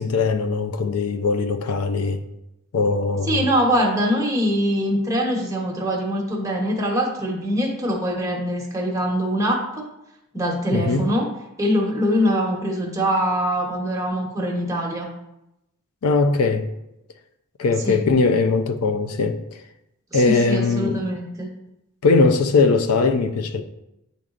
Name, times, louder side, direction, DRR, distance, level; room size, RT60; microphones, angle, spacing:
voice 1, 0.0-2.2 2.7-3.5 10.7-11.1 16.0-16.7 17.6-19.6 20.1-21.0 22.0-23.6, left 4 dB, 75° left, 0.5 m, -20 dB
voice 2, 3.3-9.9 10.3-11.3 11.6-15.1 17.8-18.0 20.1-21.5, equal, 15° right, 1.0 m, -23 dB
9.5 x 4.0 x 2.5 m
head